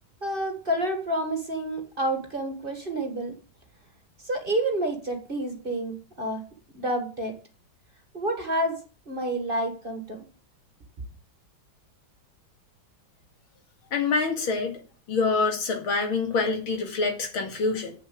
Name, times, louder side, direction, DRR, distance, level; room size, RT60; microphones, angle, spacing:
voice 1, 0.2-3.3 4.2-6.4 6.7-7.3 8.1-8.8 9.1-10.2, right 1 dB, 30° right, 4 dB, 1.6 m, -29 dB
voice 2, 13.9-14.8 15.1-17.9, left 4 dB, 80° left, 4 dB, 2.9 m, -26 dB
8.0 x 7.2 x 8.0 m, 0.39 s
omnidirectional pair, 2.2 m